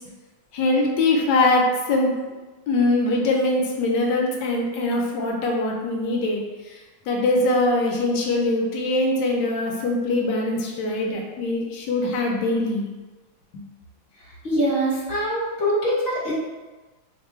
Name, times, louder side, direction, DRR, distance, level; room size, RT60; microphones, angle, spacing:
voice 1, 0.5-1.6 1.9-2.1 2.7-6.4 6.7-6.8 7.1-12.8, left 2 dB, 70° left, 0 dB, 1.2 m, -22 dB
voice 2, 14.4-16.3, equal, 40° left, -8 dB, 1.0 m, -23 dB
3.2 x 2.2 x 4.3 m, 1.2 s
omnidirectional pair, 2.2 m